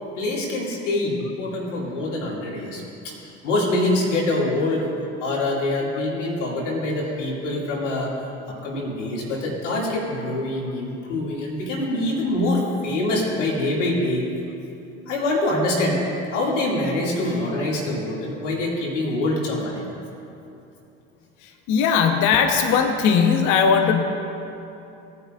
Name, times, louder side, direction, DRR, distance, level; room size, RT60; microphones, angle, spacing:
voice 1, 0.2-3.1 3.4-4.9 5.2-8.1 8.5-14.3 15.1-16.0 16.3-19.8, left 2 dB, 85° left, -3 dB, 2.6 m, -25 dB
voice 2, 21.7-24.0, left 6 dB, 55° left, 5 dB, 1.1 m, -18 dB
18.5 x 9.6 x 2.5 m, 2.8 s
hypercardioid pair, 70°, 36 cm